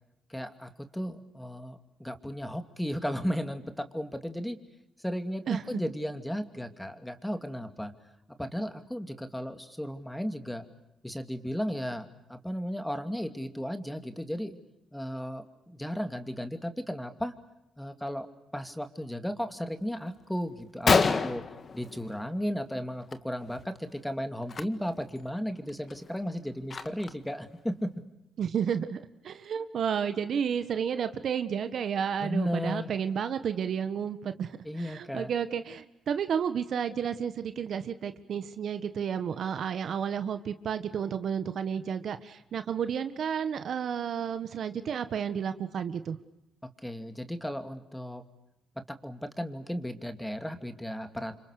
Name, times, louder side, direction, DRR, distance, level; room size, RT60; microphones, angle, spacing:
voice 1, 0.3-4.6 5.0-7.9 8.4-10.6 11.0-14.6 14.9-17.3 17.8-18.3 18.5-21.4 21.7-27.9 32.2-32.9 34.6-35.3 46.8-48.2 48.9-51.4, equal, 5° left, 8 dB, 2.6 m, -35 dB
Gunshot gunfire, 20.2-20.3 20.6-20.7 20.9-22.5 22.8-23.2 23.4-23.6 24.4-24.6 25.2-25.3 25.7-27.3, left 5 dB, 40° left, 1.7 m, -28 dB
voice 2, 28.4-29.0 29.2-46.2, right 7 dB, 60° right, 10 dB, 1.6 m, -31 dB
29.5 x 26.0 x 6.7 m, 0.88 s
cardioid pair, 90°, 0 cm